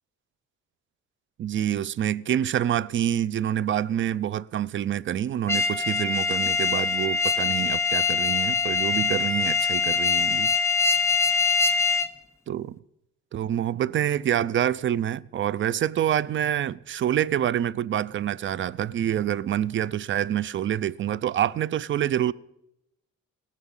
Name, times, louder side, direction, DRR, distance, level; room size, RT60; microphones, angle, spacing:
voice 1, 1.4-10.5 12.5-12.8 13.3-22.3, right 10 dB, 40° right, 0.4 m, -27 dB
sound 1, 5.5-12.1, left 5 dB, 10° left, 0.7 m, -23 dB
18.0 x 6.2 x 7.2 m
cardioid pair, 90°, 30 cm